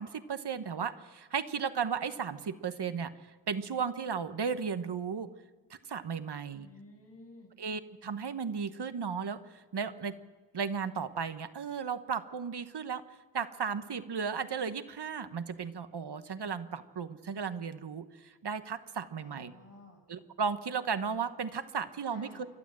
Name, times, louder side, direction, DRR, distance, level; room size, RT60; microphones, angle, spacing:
voice 1, 0.0-3.1 3.5-5.3 5.9-6.7 7.6-9.4 9.7-10.1 10.5-13.0 13.3-19.5 20.1-22.5, right 6 dB, 65° right, 10 dB, 1.3 m, -35 dB
voice 2, 6.5-7.5 19.2-20.0 22.1-22.5, left 2 dB, 80° left, -2 dB, 7.2 m, -53 dB
29.5 x 12.5 x 7.7 m, 1.3 s
cardioid pair, 60°, 43 cm